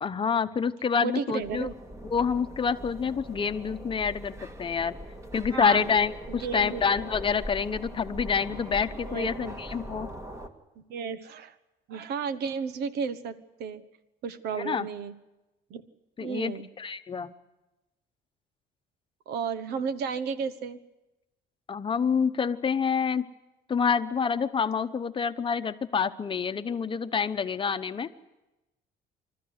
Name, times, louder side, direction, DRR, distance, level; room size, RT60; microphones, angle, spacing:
voice 1, 0.0-1.7 2.1-4.9 5.3-10.1 14.5-14.9 16.2-17.3 21.7-23.3 23.7-28.1, left 6 dB, 30° left, 10 dB, 0.9 m, -27 dB
voice 2, 1.0-1.7 5.5-5.9 6.3-6.8 9.0-9.5 10.9-11.5 11.9-13.8 14.2-15.2 15.7-15.8 16.2-16.7 19.3-20.8, right 6 dB, 75° right, 13 dB, 1.2 m, -33 dB
sound 1, 1.4-10.5, equal, 15° right, 1.9 m, -41 dB
26.0 x 13.5 x 9.6 m, 1.0 s
cardioid pair, 110°, 17 cm